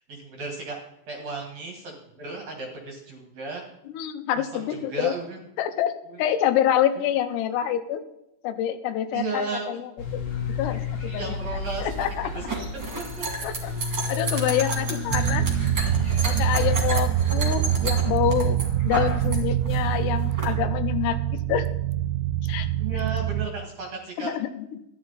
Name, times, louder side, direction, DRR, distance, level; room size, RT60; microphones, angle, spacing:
voice 1, 0.1-0.8 1.1-3.6 4.3-5.4 6.1-6.2 9.1-9.8 11.2-12.5 12.9-13.2 22.8-24.3, right 3 dB, 55° right, 1 dB, 2.1 m, -34 dB
voice 2, 3.9-5.1 5.6-5.9 6.2-8.0 8.4-9.8 10.1-10.2 10.6-11.4 11.8-12.3 13.4-13.7 14.1-15.5 16.2-21.7 22.4-22.7 24.2-24.8, left 11 dB, 80° left, 10 dB, 2.8 m, -26 dB
sound 1, 10.0-16.9, left 4 dB, 55° left, 1.8 m, -32 dB
sound 2, 11.7-19.4 19.6-20.5, right 2 dB, 35° right, 2.1 m, -32 dB
sound 3, 15.1-23.5, right 12 dB, 85° right, 2.7 m, -25 dB
13.5 x 10.5 x 4.0 m, 0.86 s
omnidirectional pair, 4.9 m